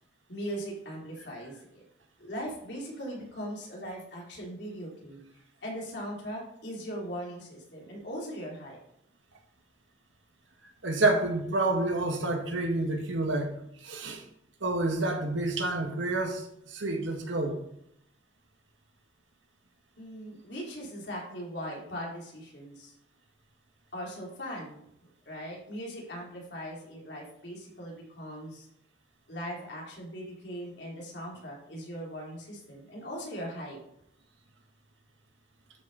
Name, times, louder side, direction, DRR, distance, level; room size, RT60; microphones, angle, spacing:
voice 1, 0.3-1.8 2.2-5.2 5.6-8.8 20.0-22.9 23.9-24.8 25.3-28.7 29.3-33.8, equal, 60° left, -3 dB, 3.6 m, -39 dB
voice 2, 10.8-13.5 13.8-14.2 14.6-17.6, right 2 dB, 90° right, 3 dB, 2.0 m, -28 dB
12.5 x 6.5 x 4.2 m, 0.75 s
head